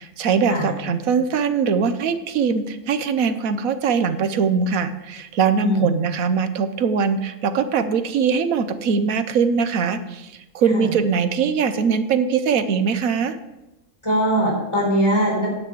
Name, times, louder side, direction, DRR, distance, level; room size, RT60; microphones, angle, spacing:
voice 1, 0.0-13.4, right 6 dB, 85° right, 10 dB, 1.3 m, -21 dB
voice 2, 5.6-5.9 10.7-10.8 14.0-15.5, equal, 20° left, -2 dB, 4.0 m, -21 dB
9.9 x 5.8 x 7.9 m, 0.98 s
omnidirectional pair, 1.4 m